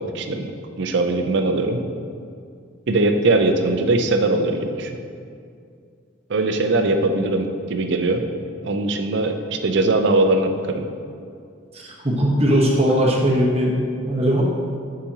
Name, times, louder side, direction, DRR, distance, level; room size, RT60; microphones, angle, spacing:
voice 1, 0.0-1.8 2.9-4.9 6.3-8.2 8.6-10.9, right 2 dB, 60° right, 6 dB, 0.5 m, -21 dB
voice 2, 11.7-13.8 14.1-14.4, equal, 30° right, -3 dB, 1.0 m, -19 dB
9.6 x 5.0 x 2.8 m, 2.3 s
head